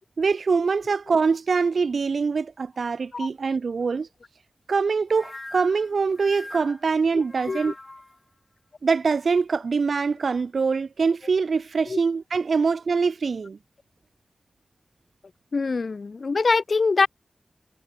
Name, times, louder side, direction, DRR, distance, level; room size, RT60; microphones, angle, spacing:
voice 1, 0.2-4.1 4.7-7.7 8.8-13.6, right 5 dB, 85° right, 0.3 m, -24 dB
sound 1, 5.1-8.2, left 2 dB, 30° left, 3.6 m, -41 dB
voice 2, 15.5-17.1, left 4 dB, 70° left, 0.6 m, -23 dB
wide cardioid pair, 55°, 0 cm